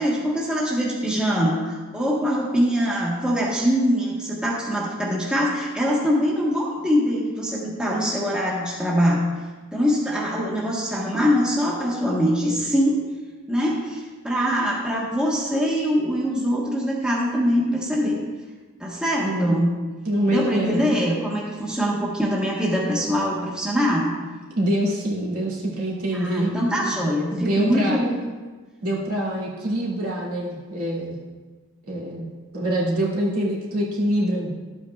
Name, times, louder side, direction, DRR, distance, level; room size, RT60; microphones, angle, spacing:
voice 1, 0.0-9.2 9.7-13.0 13.5-18.2 18.8-19.7 20.3-24.1 26.1-28.1, equal, 5° right, -4 dB, 1.2 m, -23 dB
voice 2, 19.2-19.6 20.0-21.0 24.5-26.5 26.8-27.0 27.3-28.0 28.8-31.2 31.9-32.3 32.5-34.5, right 1 dB, 85° right, -4 dB, 2.1 m, -25 dB
12.5 x 8.3 x 2.3 m, 1.3 s
head